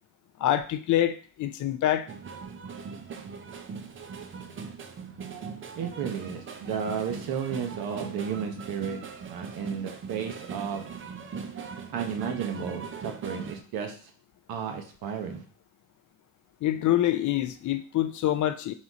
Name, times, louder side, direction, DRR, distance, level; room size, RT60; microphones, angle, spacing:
voice 1, 0.4-2.1 16.6-18.7, left 12 dB, 50° left, 10 dB, 0.5 m, -26 dB
sound 1, 2.1-13.6, right 5 dB, 30° right, 0.6 m, -40 dB
voice 2, 5.7-9.0 9.3-10.9 11.9-14.0 14.5-15.4, right 7 dB, 60° right, 5 dB, 1.0 m, -33 dB
4.2 x 2.3 x 4.0 m, 0.41 s
hypercardioid pair, 65°, 40 cm